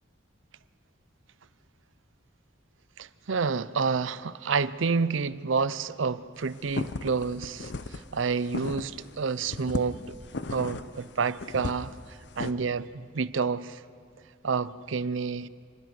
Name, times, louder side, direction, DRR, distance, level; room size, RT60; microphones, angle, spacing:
voice 1, 3.0-10.2 10.5-13.8 14.4-15.5, right 5 dB, 85° right, 0.6 m, -29 dB
sound 1, 6.4-9.1 9.4-12.5, left 3 dB, 60° left, 0.7 m, -35 dB
26.0 x 20.0 x 6.2 m
head